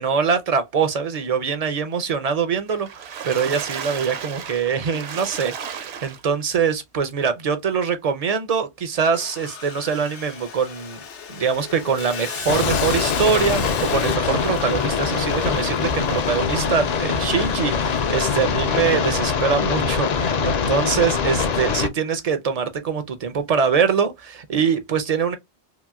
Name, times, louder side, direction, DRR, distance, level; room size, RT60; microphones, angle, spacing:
voice 1, 0.0-11.0 11.3-25.4, right 6 dB, 50° right, 0.4 m, -23 dB
Water / Splash splatter, 2.7-6.5 7.1-7.2 7.5-7.6, right 7 dB, 70° right, 0.9 m, -34 dB
Sawing, 9.1-19.4, left 7 dB, 85° left, 1.0 m, -36 dB
sound 1, 12.5-21.9, left 6 dB, 60° left, 0.4 m, -23 dB
2.9 x 2.8 x 2.2 m
omnidirectional pair, 1.2 m